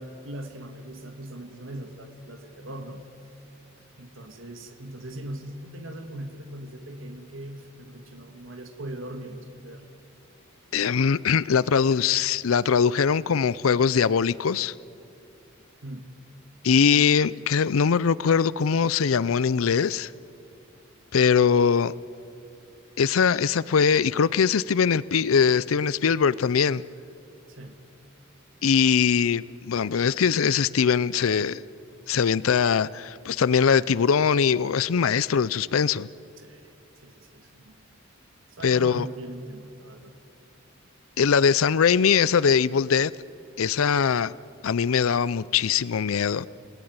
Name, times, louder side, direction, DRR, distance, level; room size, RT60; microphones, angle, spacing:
voice 1, 0.0-3.1 4.0-9.9 15.8-16.0 27.5-27.8 36.4-37.7 38.5-40.2, right 1 dB, 70° right, 6 dB, 1.9 m, -40 dB
voice 2, 10.7-14.7 16.6-20.1 21.1-21.9 23.0-26.8 28.6-31.6 32.1-36.1 38.6-39.1 41.2-43.1 43.6-44.3 44.6-46.5, left 6 dB, 90° left, 20 dB, 0.5 m, -22 dB
29.0 x 19.0 x 9.4 m, 2.7 s
head